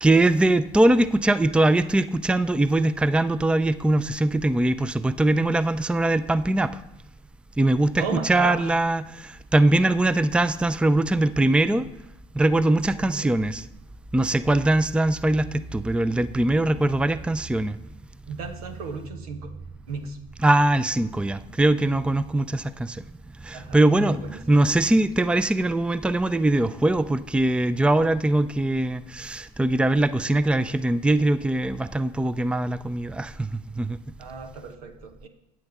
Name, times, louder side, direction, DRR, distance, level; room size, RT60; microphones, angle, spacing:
voice 1, 0.0-6.8 7.6-11.9 12.3-13.6 14.1-17.8 20.4-23.0 23.4-24.2 24.5-34.0, right 1 dB, 5° right, 15 dB, 0.5 m, -22 dB
voice 2, 8.0-8.8 12.7-13.4 14.4-14.6 18.3-19.5 19.9-20.2 23.5-24.7 34.2-35.3, right 5 dB, 85° right, 7 dB, 1.1 m, -35 dB
13.5 x 8.9 x 3.6 m, 0.85 s
hypercardioid pair, 65°, 19 cm